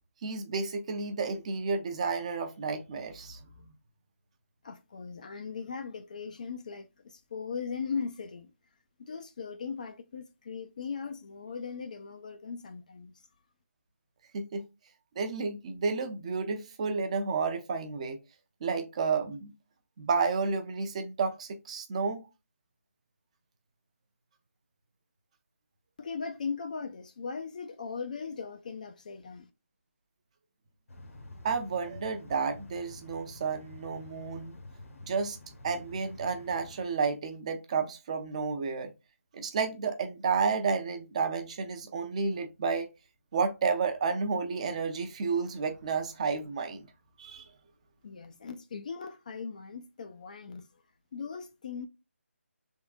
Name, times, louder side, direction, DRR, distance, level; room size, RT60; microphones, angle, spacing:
voice 1, 0.2-3.4 14.3-14.6 15.2-18.2 18.6-19.5 20.0-22.2 31.4-34.5 35.1-35.4 35.6-38.9 39.3-42.9 43.3-46.9 47.2-47.5, right 5 dB, 25° right, 0.6 m, -31 dB
voice 2, 4.6-8.5 9.0-13.2 26.0-29.5 48.0-50.7 51.1-51.9, left 5 dB, 35° left, 0.3 m, -39 dB
sound 1, 30.9-36.8, left 2 dB, 70° left, 1.1 m, -49 dB
5.0 x 3.5 x 2.4 m
figure-of-eight pair, 165°, 8 cm